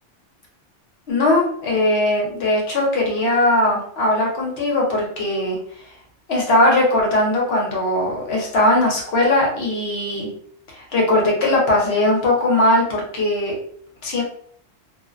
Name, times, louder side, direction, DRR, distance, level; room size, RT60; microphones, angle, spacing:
voice 1, 1.1-5.6 6.3-10.3 10.7-13.5 14.0-14.2, left 1 dB, 60° left, -2 dB, 1.0 m, -19 dB
2.4 x 2.1 x 2.4 m, 0.62 s
omnidirectional pair, 1.2 m